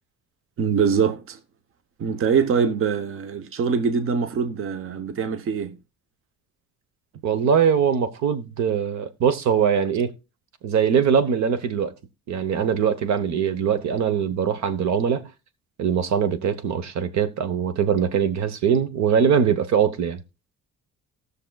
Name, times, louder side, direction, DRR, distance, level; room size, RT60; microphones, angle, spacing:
voice 1, 0.6-1.4 2.0-5.8, right 6 dB, 45° right, 0.8 m, -23 dB
voice 2, 7.2-10.1 10.6-11.9 12.3-15.3 15.8-20.2, right 7 dB, 70° right, 1.0 m, -22 dB
18.5 x 6.6 x 2.3 m
cardioid pair, 140°, 30 cm